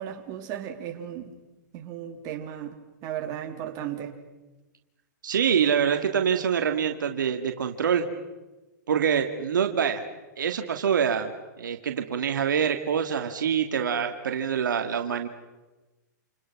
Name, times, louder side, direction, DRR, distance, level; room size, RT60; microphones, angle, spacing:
voice 1, 0.0-1.3 1.7-4.2, right 10 dB, 40° right, 3.6 m, -35 dB
voice 2, 5.2-8.0 8.9-10.0 10.4-11.3 11.6-15.3, right 7 dB, 85° right, 2.2 m, -25 dB
29.0 x 28.5 x 6.1 m
hypercardioid pair, 130°, 10 cm